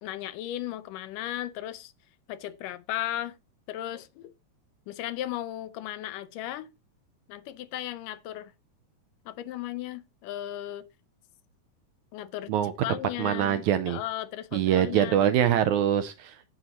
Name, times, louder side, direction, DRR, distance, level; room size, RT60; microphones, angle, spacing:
voice 1, 0.0-1.9 2.3-3.4 3.7-4.3 4.9-6.7 7.3-8.5 9.3-10.8 12.1-12.5 12.8-15.3, left 13 dB, 80° left, 2.2 m, -36 dB
voice 2, 13.2-14.0 14.5-16.5, right 10 dB, 80° right, 1.8 m, -24 dB
16.0 x 5.5 x 2.9 m
omnidirectional pair, 3.9 m